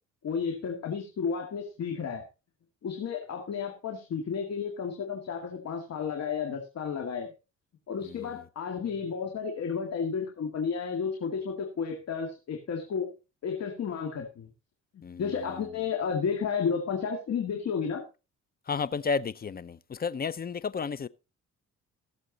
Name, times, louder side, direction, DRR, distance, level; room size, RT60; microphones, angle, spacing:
voice 1, 0.2-2.2 2.8-7.3 7.9-13.1 13.4-14.5 14.9-18.0, left 6 dB, 60° left, 2.2 m, -32 dB
voice 2, 8.0-8.4 15.0-15.6 18.7-21.1, left 5 dB, 30° left, 0.7 m, -33 dB
16.0 x 7.3 x 4.0 m
cardioid pair, 90°, 30 cm